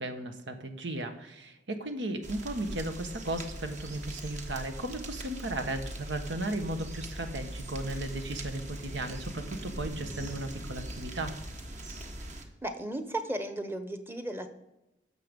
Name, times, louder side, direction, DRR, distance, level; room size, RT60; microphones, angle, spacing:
voice 1, 0.0-11.3, right 1 dB, 80° right, 7 dB, 1.2 m, -35 dB
sound 1, 2.2-12.4, right 1 dB, 45° right, 1.4 m, -41 dB
voice 2, 12.6-14.5, right 1 dB, 15° right, 8 dB, 1.0 m, -35 dB
16.0 x 6.7 x 5.3 m, 0.95 s
head